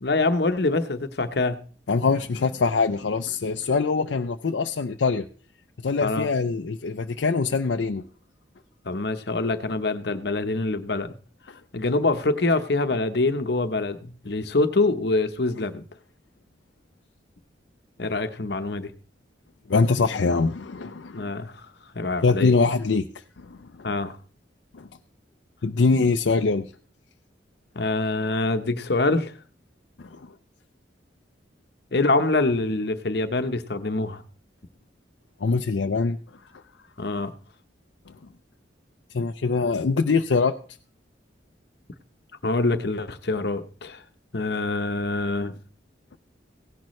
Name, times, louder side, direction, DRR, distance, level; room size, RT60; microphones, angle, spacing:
voice 1, 0.0-1.6 6.0-6.3 8.8-11.1 11.7-15.8 18.0-18.9 21.1-21.7 21.9-22.5 23.8-24.2 27.7-29.3 31.9-34.2 37.0-37.3 42.4-44.0 44.3-45.5, left 2 dB, 60° left, 10 dB, 0.9 m, -25 dB
voice 2, 1.9-5.2 5.8-8.0 19.7-21.3 22.2-23.1 23.4-23.6 24.7-24.9 25.6-26.7 30.0-30.2 35.4-36.2 39.1-40.5, left 4 dB, 80° left, 6 dB, 0.5 m, -23 dB
16.5 x 10.5 x 3.2 m, 0.40 s
head